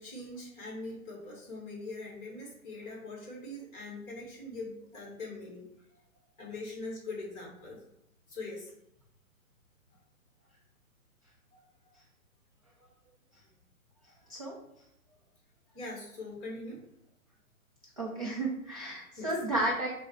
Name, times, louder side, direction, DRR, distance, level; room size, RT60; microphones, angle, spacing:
voice 1, 0.0-5.6 6.4-7.8 8.3-8.7 11.5-11.6 14.1-14.2 15.7-16.8 19.2-19.3, left 2 dB, 15° left, -3 dB, 0.9 m, -42 dB
voice 2, 18.0-19.9, right 1 dB, 25° right, -5 dB, 0.3 m, -32 dB
6.0 x 2.0 x 3.0 m, 0.78 s
figure-of-eight pair, 125°, 42 cm